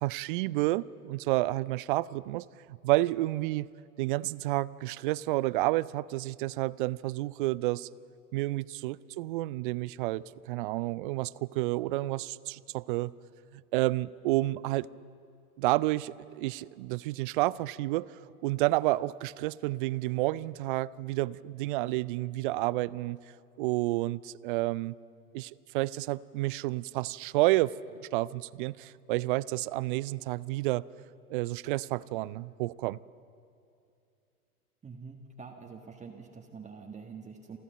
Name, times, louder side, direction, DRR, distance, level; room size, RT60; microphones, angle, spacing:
voice 1, 0.0-3.7 4.0-7.9 8.3-13.1 13.5-14.9 15.6-23.2 23.6-25.0 25.3-30.8 31.3-33.0, right 18 dB, 40° right, 21 dB, 0.4 m, -30 dB
voice 2, 34.8-37.6, right 5 dB, 15° right, 1 dB, 1.6 m, -46 dB
28.5 x 13.5 x 7.9 m, 2.6 s
hypercardioid pair, 100°, 45 cm